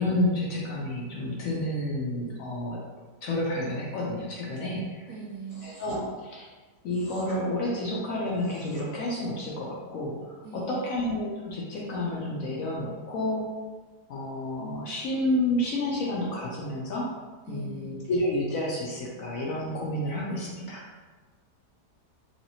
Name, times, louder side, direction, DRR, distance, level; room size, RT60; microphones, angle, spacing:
voice 1, 0.0-2.8 3.2-5.1 5.6-6.5 6.8-13.5 14.1-17.1 17.5-20.8, left 1 dB, 70° left, -3 dB, 0.9 m, -30 dB
voice 2, 5.1-5.7 10.4-10.9 17.5-18.0, right 6 dB, 75° right, -4 dB, 1.1 m, -40 dB
sound 1, 5.5-6.0 6.9-7.4 8.2-8.9, equal, 30° left, 1.2 m, -47 dB
3.1 x 2.8 x 2.7 m, 1.4 s
omnidirectional pair, 1.7 m